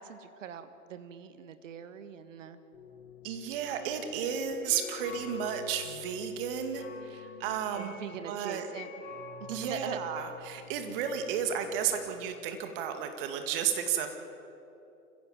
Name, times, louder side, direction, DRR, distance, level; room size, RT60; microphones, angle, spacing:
voice 1, 0.0-2.6 7.7-8.9 9.5-10.0, right 8 dB, 55° right, 11 dB, 1.6 m, -42 dB
sound 1, 2.7-12.5, left 6 dB, 45° left, 5.0 m, -48 dB
voice 2, 3.2-8.0 8.3-8.7 9.5-14.1, right 8 dB, 35° right, 6 dB, 2.3 m, -33 dB
27.0 x 16.0 x 7.6 m, 3.0 s
figure-of-eight pair, 120°, 46 cm